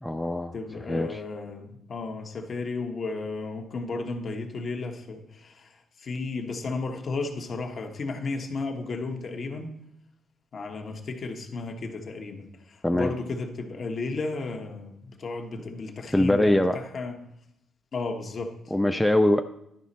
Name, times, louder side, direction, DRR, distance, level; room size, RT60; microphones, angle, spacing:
voice 1, 0.0-0.5 0.9-1.2 12.8-13.1 16.1-16.8 18.7-19.4, left 1 dB, 5° left, 6 dB, 0.4 m, -22 dB
voice 2, 0.5-9.7 10.5-17.2 17.9-18.6, left 3 dB, 50° left, 4 dB, 1.2 m, -34 dB
11.0 x 5.0 x 4.2 m, 0.79 s
cardioid pair, 90°, 0 cm